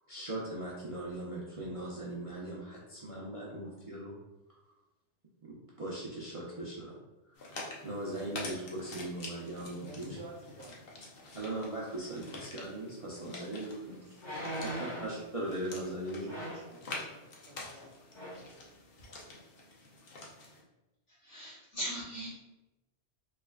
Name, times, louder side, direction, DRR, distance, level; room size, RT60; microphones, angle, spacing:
voice 1, 0.1-4.2 5.5-7.0 7.4-7.5 7.8-10.2 11.3-14.1 15.0-16.3, right 1 dB, 40° right, -6 dB, 0.5 m, -39 dB
sound 1, 7.4-20.6, left 2 dB, 55° left, 0.8 m, -47 dB
voice 2, 9.8-11.0 13.8-15.1 16.1-17.9 18.2-18.5, right 2 dB, 65° right, -1 dB, 1.0 m, -53 dB
sound 2, 13.2-13.3 14.2-15.2 16.3-16.7 17.7-17.9 18.1-18.5 19.0-19.1, right 1 dB, 20° left, 1.6 m, -40 dB
voice 3, 21.2-22.3, equal, 70° left, -9 dB, 2.0 m, -39 dB
3.7 x 3.3 x 2.3 m, 1.0 s
omnidirectional pair, 1.3 m